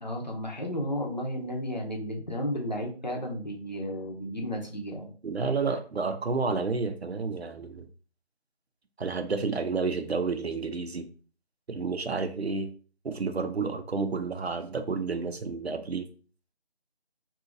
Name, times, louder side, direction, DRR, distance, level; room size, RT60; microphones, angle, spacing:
voice 1, 0.0-5.1, equal, 45° left, 0 dB, 0.7 m, -33 dB
voice 2, 5.2-7.9 9.0-11.1 11.7-12.7 13.0-16.1, right 4 dB, 75° right, 8 dB, 0.6 m, -30 dB
2.8 x 2.4 x 3.7 m, 0.39 s
figure-of-eight pair, 175°, 32 cm